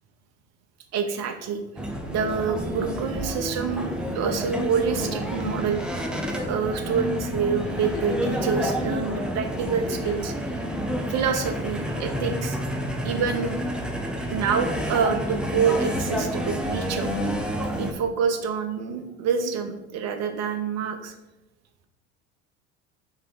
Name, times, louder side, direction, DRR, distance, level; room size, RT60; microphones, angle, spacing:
voice 1, 0.9-1.6 2.1-5.8 6.5-10.3 11.1-12.6 13.0-13.6 14.3-17.1 17.8-21.1, right 6 dB, 45° right, 6 dB, 0.8 m, -27 dB
sound 1, 1.8-17.9, equal, ahead, 0.5 m, -29 dB
Giggle, 4.7-5.3 6.2-6.7 7.3-7.4 7.7-8.5 9.7-10.3 11.5-12.1 13.4-13.9 15.4-15.5, left 4 dB, 70° left, 0.9 m, -40 dB
3.7 x 2.9 x 4.8 m, 0.95 s
hypercardioid pair, 75°, 37 cm